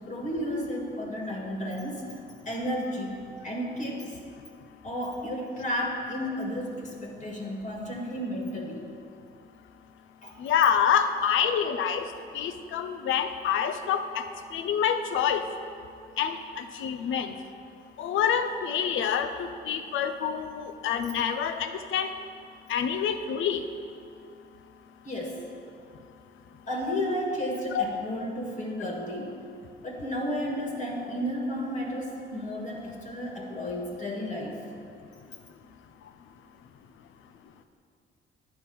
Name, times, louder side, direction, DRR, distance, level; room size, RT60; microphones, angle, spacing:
voice 1, 0.1-2.0 2.4-4.1 4.8-8.8 10.2-10.3 25.0-25.4 26.7-29.4 29.8-34.6, equal, 40° left, 0 dB, 1.6 m, -32 dB
voice 2, 10.4-12.1 12.3-14.2 14.5-15.5 16.2-17.3 18.0-22.1 22.7-23.6 27.7-27.9, left 8 dB, 80° left, 9 dB, 0.6 m, -27 dB
9.4 x 4.4 x 7.0 m, 2.4 s
cardioid pair, 90°, 20 cm